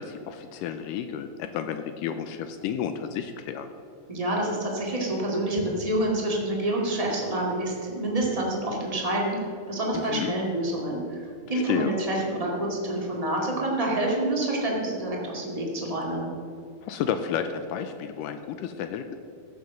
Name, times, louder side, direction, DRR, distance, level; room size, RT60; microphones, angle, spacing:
voice 1, 0.0-3.7 9.9-10.3 11.7-11.9 16.8-19.2, left 8 dB, 80° left, 8 dB, 2.0 m, -31 dB
voice 2, 4.1-9.4 9.7-16.3, right 1 dB, 15° right, -2 dB, 1.2 m, -27 dB
15.0 x 6.7 x 6.3 m, 2.5 s
omnidirectional pair, 4.2 m